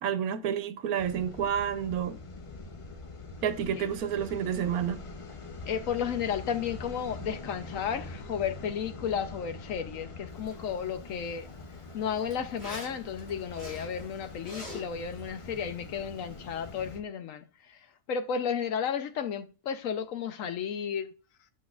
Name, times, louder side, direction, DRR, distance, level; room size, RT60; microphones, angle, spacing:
voice 1, 0.0-2.2 3.4-5.0, right 8 dB, 85° right, 1.2 m, -30 dB
sound 1, 1.0-17.0, left 3 dB, 50° left, 0.4 m, -44 dB
voice 2, 5.7-11.5 11.9-17.8 18.1-21.1, left 7 dB, 70° left, 1.0 m, -33 dB
Zipper (clothing), 10.3-17.0, left 1 dB, 10° left, 3.8 m, -49 dB
8.0 x 7.1 x 2.4 m
omnidirectional pair, 1.5 m